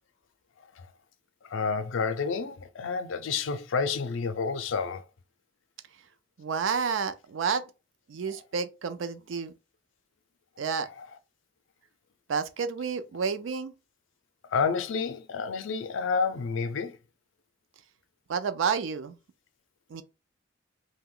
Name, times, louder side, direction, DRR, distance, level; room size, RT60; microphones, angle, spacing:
voice 1, 1.5-5.0 11.0-11.1 14.5-16.9, left 5 dB, 85° left, 0.4 m, -29 dB
voice 2, 6.4-7.6 8.1-9.5 10.6-10.9 12.3-13.7 18.3-19.2 19.9-20.0, right 6 dB, 85° right, 0.4 m, -30 dB
2.8 x 2.1 x 3.7 m
head